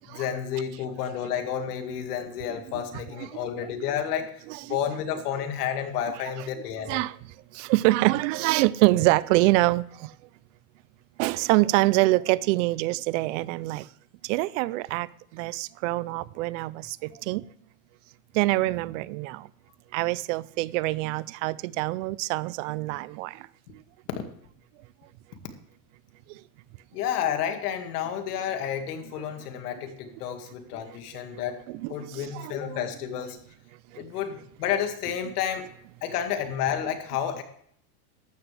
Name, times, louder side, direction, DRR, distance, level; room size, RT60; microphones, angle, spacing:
voice 1, 0.1-4.3 4.7-7.0 24.2-24.3 26.9-31.6 31.9-33.4 34.0-35.7 36.0-37.4, left 9 dB, 80° left, 2.1 m, -30 dB
voice 2, 3.2-3.7 4.5-4.8 6.9-7.2 7.5-10.2 11.2-13.9 14.2-17.4 18.3-19.5 19.9-23.5 26.3-26.4 29.4-29.5 31.3-31.4 31.7-32.8 33.9-34.0, right 19 dB, 55° right, 0.5 m, -25 dB
14.5 x 12.0 x 3.3 m
supercardioid pair, 145°, 45 cm